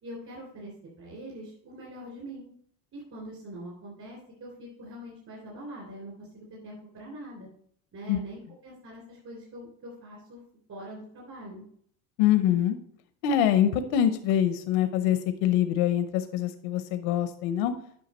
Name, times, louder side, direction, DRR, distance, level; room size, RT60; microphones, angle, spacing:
voice 1, 0.0-0.7 1.0-2.5 2.9-7.5 7.9-10.4 10.7-11.6, right 1 dB, 45° right, -3 dB, 3.3 m, -43 dB
voice 2, 12.2-12.8 13.2-17.7, left 10 dB, 85° left, 9 dB, 0.8 m, -24 dB
8.8 x 5.7 x 4.2 m, 0.65 s
cardioid pair, 120°, 40 cm